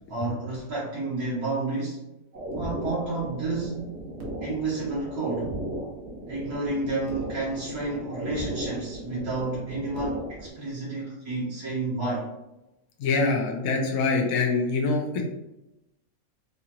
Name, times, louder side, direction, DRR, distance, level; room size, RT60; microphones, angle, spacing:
voice 1, 0.1-2.1 2.6-3.9 4.4-5.5 6.3-12.3, right 2 dB, 80° right, -9 dB, 1.7 m, -30 dB
sound 1, 2.3-10.5, right 1 dB, 55° right, 1.0 m, -36 dB
voice 2, 13.0-15.2, left 3 dB, 75° left, 1 dB, 1.1 m, -24 dB
4.8 x 2.4 x 2.8 m, 0.93 s
omnidirectional pair, 1.5 m